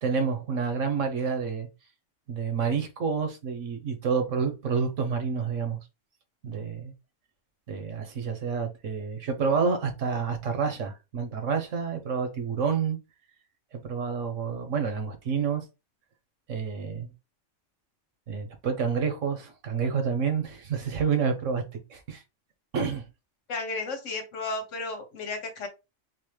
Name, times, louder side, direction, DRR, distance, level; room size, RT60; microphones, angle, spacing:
voice 1, 0.0-1.7 2.3-5.8 6.4-6.9 7.7-13.0 13.7-15.7 16.5-17.1 18.3-21.6 21.9-22.2 22.7-23.0, right 5 dB, 85° right, 1.3 m, -28 dB
voice 2, 23.5-25.7, left 3 dB, 75° left, 1.3 m, -33 dB
3.9 x 2.7 x 3.2 m
omnidirectional pair, 1.3 m